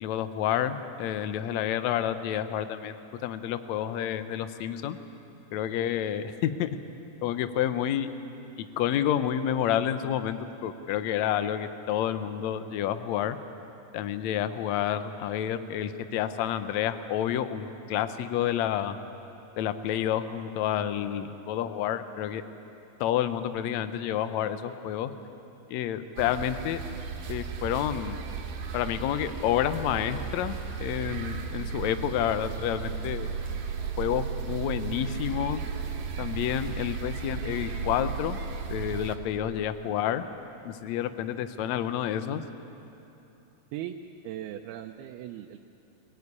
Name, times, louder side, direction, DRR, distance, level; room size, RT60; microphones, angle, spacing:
voice 1, 0.0-3.0 3.2-5.0 5.5-6.7 7.2-8.1 8.8-13.4 13.9-19.0 19.6-22.4 23.0-25.1 25.7-26.8 27.3-28.2 28.7-33.3 34.0-35.6 36.2-38.4 38.7-40.2 40.6-42.4, left 10 dB, 80° left, 10 dB, 1.6 m, -29 dB
sound 1, 26.2-39.2, right 6 dB, 65° right, 3.1 m, -35 dB
voice 2, 44.2-45.6, right 12 dB, 90° right, 4 dB, 2.7 m, -38 dB
22.5 x 18.0 x 9.7 m, 2.9 s
omnidirectional pair, 4.4 m